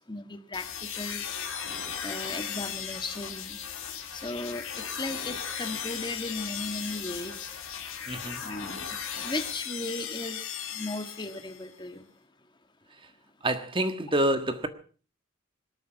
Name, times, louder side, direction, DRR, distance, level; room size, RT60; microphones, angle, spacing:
voice 1, 0.1-0.7 0.9-1.2 2.0-3.6 4.1-7.5 8.4-12.1, left 2 dB, 20° left, 1.8 m, -36 dB
sound 1, 0.5-11.7, left 8 dB, 80° left, 6.0 m, -37 dB
voice 2, 8.1-8.4 13.4-14.7, right 1 dB, 25° right, 1.5 m, -27 dB
26.0 x 8.7 x 5.8 m
head